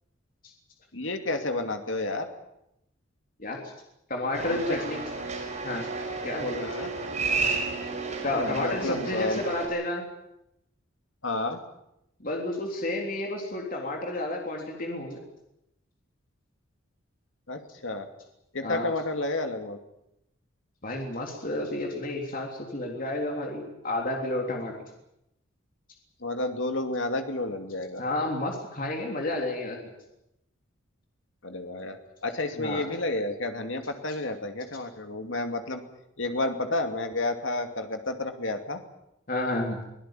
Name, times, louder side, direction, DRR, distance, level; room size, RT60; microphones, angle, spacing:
voice 1, 0.9-2.3 4.5-4.8 6.6-6.9 8.2-9.4 11.2-11.6 17.5-18.1 18.5-19.8 26.2-28.0 31.4-35.8 36.2-38.8, left 2 dB, 70° left, 6 dB, 2.6 m, -31 dB
voice 2, 4.1-5.0 5.6-5.9 6.2-6.7 8.2-10.1 12.2-15.2 18.6-18.9 20.8-24.7 28.0-29.8 32.5-32.8 39.3-39.8, left 2 dB, 45° left, 1 dB, 3.5 m, -31 dB
sound 1, 4.3-9.6, right 4 dB, 35° right, 5.7 m, -32 dB
23.5 x 17.0 x 9.1 m, 0.84 s
head